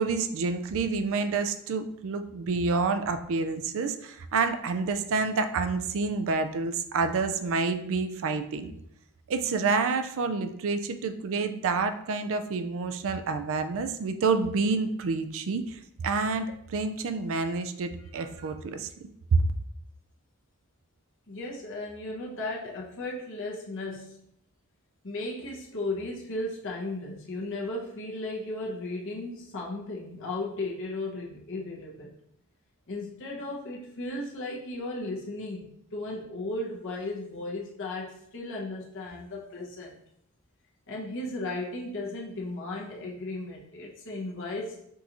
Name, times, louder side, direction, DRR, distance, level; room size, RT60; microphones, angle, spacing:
voice 1, 0.0-8.7 9.3-18.9 19.3-19.4, right 4 dB, 60° right, 9 dB, 0.4 m, -28 dB
voice 2, 21.3-24.2 25.0-32.1 32.9-40.0 40.9-44.8, left 2 dB, 60° left, -3 dB, 1.0 m, -35 dB
6.0 x 2.6 x 2.9 m, 0.73 s
head